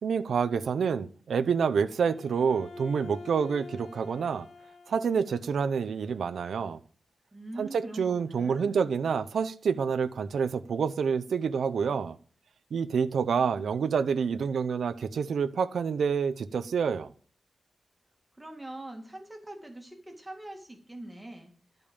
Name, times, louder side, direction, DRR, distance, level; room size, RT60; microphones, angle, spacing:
voice 1, 0.0-4.5 4.9-6.8 7.6-12.1 12.7-17.1, right 6 dB, 85° right, 0.6 m, -28 dB
Bowed string instrument, 2.0-5.5, left 3 dB, 75° left, 2.8 m, -46 dB
voice 2, 7.3-8.9 18.4-21.5, right 1 dB, 10° right, 2.1 m, -43 dB
12.0 x 5.3 x 6.9 m
wide cardioid pair, 140°, 0 cm